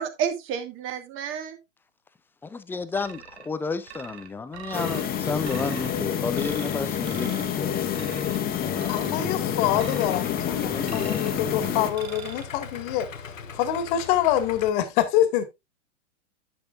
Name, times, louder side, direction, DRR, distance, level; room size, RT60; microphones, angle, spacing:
voice 1, 0.0-1.6, right 8 dB, 30° right, 2.0 m, -30 dB
voice 2, 2.4-8.0 8.4-9.0 10.7-11.3, left 4 dB, 5° left, 0.5 m, -32 dB
sound 1, 2.9-3.5 3.9-5.1 5.4-5.9 6.4-6.8 7.0-7.6 7.9-8.4 8.8-9.2 9.8-10.3 10.9-11.4 11.9-12.4, right 9 dB, 55° right, 1.7 m, -43 dB
sound 2, 4.7-11.9, left 9 dB, 25° left, 1.4 m, -28 dB
voice 3, 8.9-13.1 13.5-15.4, left 11 dB, 40° left, 1.9 m, -25 dB
Idling, 9.6-14.7, left 6 dB, 85° left, 1.2 m, -40 dB
11.0 x 7.9 x 2.4 m
hypercardioid pair, 115°, 38 cm